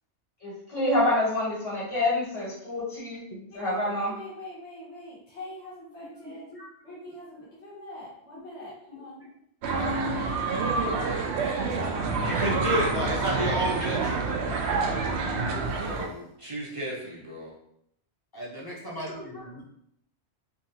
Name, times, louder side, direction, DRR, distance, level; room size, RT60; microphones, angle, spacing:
voice 1, 0.4-3.2 3.6-4.1, left 1 dB, 55° left, -6 dB, 2.0 m, -27 dB
voice 2, 3.5-6.5 6.8-9.2 9.7-10.3 11.9-12.0 15.6-16.1, left 1 dB, 75° left, -8 dB, 1.7 m, -44 dB
voice 3, 6.2-6.7 8.9-9.3 11.1-11.2 11.5-12.6 13.4-14.2 18.3-19.6, equal, 20° left, -4 dB, 0.8 m, -40 dB
sound 1, 9.6-16.1, right 4 dB, 75° right, 0.9 m, -28 dB
voice 4, 12.2-14.4 15.8-17.6, equal, 35° right, -4 dB, 0.6 m, -31 dB
3.8 x 3.0 x 2.8 m, 0.72 s
omnidirectional pair, 1.2 m